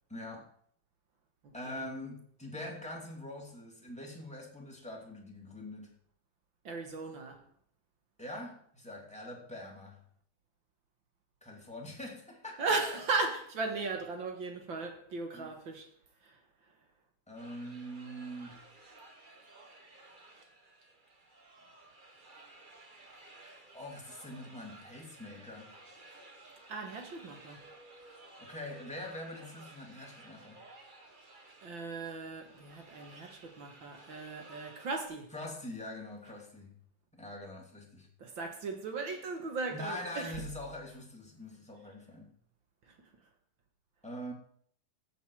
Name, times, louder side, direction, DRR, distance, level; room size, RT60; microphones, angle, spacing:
voice 1, 0.1-0.5 1.5-5.9 8.2-10.0 11.4-12.6 15.3-15.5 17.3-18.6 23.7-25.7 28.4-30.6 35.3-36.7 37.1-38.1 39.7-42.3 44.0-44.3, left 1 dB, ahead, 2.1 m, -44 dB
voice 2, 1.4-1.9 6.6-7.4 12.6-15.9 16.2-16.4 26.7-27.7 31.6-35.3 38.2-40.3 42.9-43.0, right 3 dB, 50° right, 1.9 m, -37 dB
sound 1, 17.3-35.1, right 2 dB, 85° right, 0.4 m, -55 dB
14.5 x 8.3 x 4.8 m
omnidirectional pair, 3.4 m